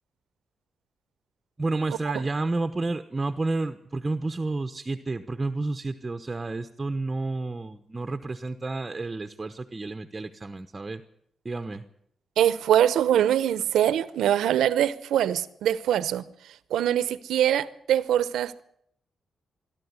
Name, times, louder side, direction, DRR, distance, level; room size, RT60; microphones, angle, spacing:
voice 1, 1.6-11.0 11.4-11.8, right 2 dB, 30° right, 1.0 m, -30 dB
voice 2, 12.4-18.6, right 10 dB, 85° right, 0.9 m, -23 dB
22.5 x 12.5 x 9.7 m
cardioid pair, 65°, 0 cm